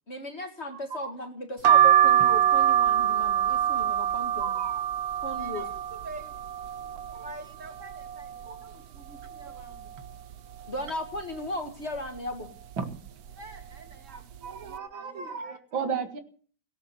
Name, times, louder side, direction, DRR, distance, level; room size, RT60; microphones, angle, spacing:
voice 1, 0.1-4.5 5.2-5.7 10.7-12.5, left 1 dB, 35° left, 6 dB, 2.1 m, -36 dB
voice 2, 0.7-1.1 4.4-4.8 7.1-7.2 8.4-8.6 12.8-12.9 14.1-16.2, right 6 dB, 85° right, 7 dB, 2.8 m, -35 dB
sound 1, 1.6-7.3 7.8-8.5 8.9-9.0 9.2-10.3 10.8-11.2 12.0-12.3 13.1-13.3 13.6-13.8, right 10 dB, 60° right, 1.2 m, -24 dB
voice 3, 5.4-6.3 6.8-10.0 13.3-15.6, right 2 dB, 40° right, 5 dB, 3.2 m, -47 dB
18.0 x 9.1 x 7.8 m, 0.43 s
omnidirectional pair, 2.1 m